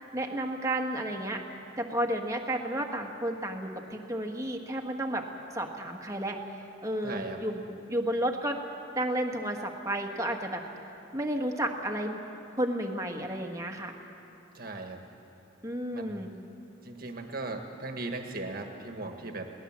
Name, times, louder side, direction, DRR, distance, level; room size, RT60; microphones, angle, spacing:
voice 1, 0.1-1.4 1.8-5.3 5.5-6.4 6.8-7.6 7.9-8.6 8.9-10.6 11.1-12.2 12.6-13.9 15.6-16.3, right 1 dB, 15° right, 2 dB, 1.5 m, -32 dB
voice 2, 7.0-7.4 14.5-15.0 15.9-16.3 16.8-19.5, right 2 dB, 50° right, 4 dB, 1.6 m, -38 dB
22.0 x 18.0 x 7.4 m, 2.9 s
head